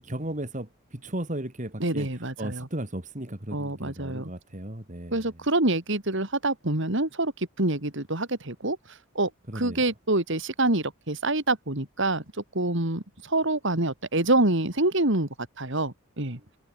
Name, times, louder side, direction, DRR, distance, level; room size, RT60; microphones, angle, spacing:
voice 1, 0.0-5.4 9.5-9.8, right 1 dB, 35° right, 2.5 m, -36 dB
voice 2, 1.8-2.7 3.5-4.3 5.1-8.8 9.1-12.2 12.5-15.3 15.6-16.4, right 2 dB, 55° right, 3.0 m, -26 dB
head